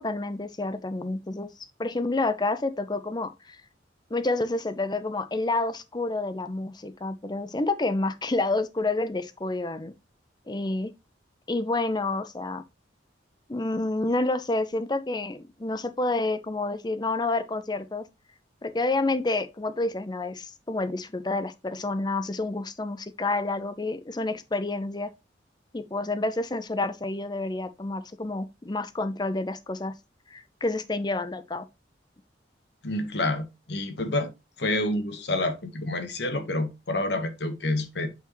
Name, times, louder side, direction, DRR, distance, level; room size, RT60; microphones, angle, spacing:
voice 1, 0.0-1.5 1.8-3.6 4.1-9.9 10.5-10.9 11.5-12.6 13.5-18.0 18.6-25.1 25.7-29.9 30.3-31.7, left 2 dB, 25° left, 0.6 m, -29 dB
voice 2, 32.8-34.3 34.6-38.1, left 2 dB, 65° left, 1.2 m, -28 dB
8.1 x 4.4 x 3.0 m
head